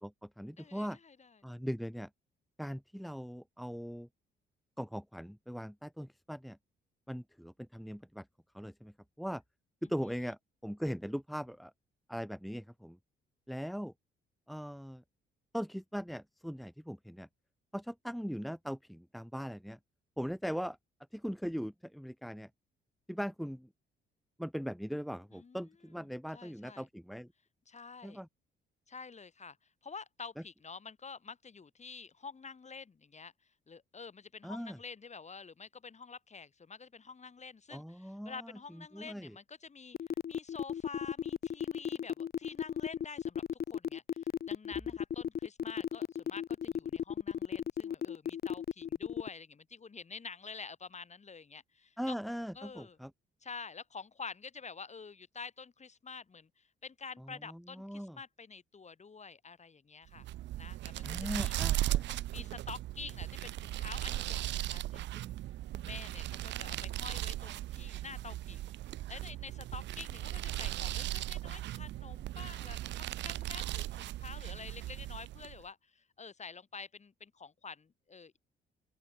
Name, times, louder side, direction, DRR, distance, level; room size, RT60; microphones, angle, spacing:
voice 1, 0.0-1.0 1.4-2.1 2.6-4.1 4.8-6.6 7.1-8.2 8.5-8.9 9.2-9.4 9.9-11.7 12.1-13.0 13.5-13.9 14.5-15.0 15.5-17.3 17.7-19.8 20.2-20.8 21.1-22.5 23.1-23.7 24.4-27.3 28.0-28.3 34.4-34.8 37.7-38.5 38.9-39.3 52.0-53.1 57.5-58.2 61.0-62.2, equal, ahead, 1.3 m, -40 dB
voice 2, 0.6-1.4 9.8-9.9 25.3-26.1 26.3-26.9 27.7-28.2 28.9-29.6 29.8-33.3 33.7-40.0 40.3-43.4 43.7-52.1 52.5-53.0 53.4-60.3 60.6-61.6 62.3-65.4 65.7-68.7 69.1-78.4, left 5 dB, 35° left, 7.2 m, -48 dB
sound 1, 39.9-49.3, left 9 dB, 50° left, 1.0 m, -35 dB
sound 2, 60.1-75.6, right 14 dB, 65° right, 0.4 m, -37 dB
open air
cardioid pair, 90°, 20 cm